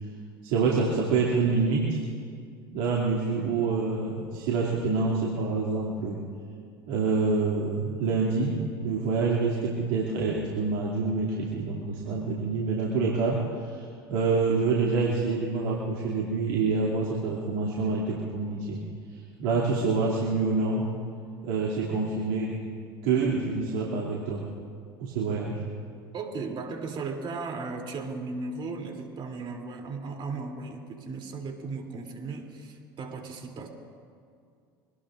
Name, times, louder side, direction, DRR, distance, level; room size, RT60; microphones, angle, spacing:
voice 1, 0.4-2.0 2.7-6.2 6.9-13.8 14.1-18.8 19.4-20.9 21.4-22.6 23.0-24.5 25.0-25.6, right 4 dB, 65° right, -5 dB, 2.7 m, -27 dB
voice 2, 26.1-33.7, right 4 dB, 45° right, 2 dB, 3.0 m, -36 dB
25.0 x 19.5 x 2.6 m, 2.2 s
hypercardioid pair, 75°, 12 cm